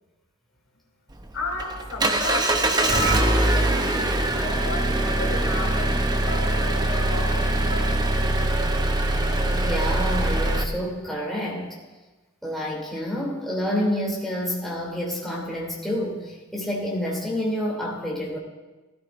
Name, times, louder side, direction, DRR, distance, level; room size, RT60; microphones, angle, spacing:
Engine, 1.1-10.6, right 1 dB, 20° right, 0.7 m, -23 dB
voice 1, 1.3-8.1, left 1 dB, 65° left, 0 dB, 2.5 m, -33 dB
voice 2, 9.5-11.7 12.4-18.4, equal, ahead, -5 dB, 2.7 m, -28 dB
19.5 x 13.5 x 2.5 m, 1.2 s
head